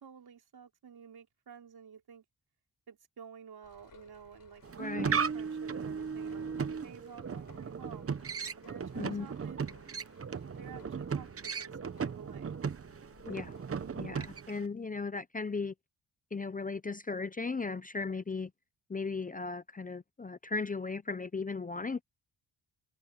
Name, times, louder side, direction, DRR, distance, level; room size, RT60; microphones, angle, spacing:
voice 1, 0.0-2.2 2.9-8.1 8.6-9.6 10.6-12.5, right 7 dB, 70° right, 4.4 m, -52 dB
sound 1, 3.6-14.4, left 6 dB, 60° left, 6.9 m, -61 dB
sound 2, 4.6-14.7, right 6 dB, 35° right, 0.9 m, -36 dB
voice 2, 4.8-5.2 9.0-9.3 13.3-13.6 14.0-15.7 16.3-18.5 18.9-22.0, left 4 dB, 20° left, 0.6 m, -36 dB
open air
wide cardioid pair, 105°, 39 cm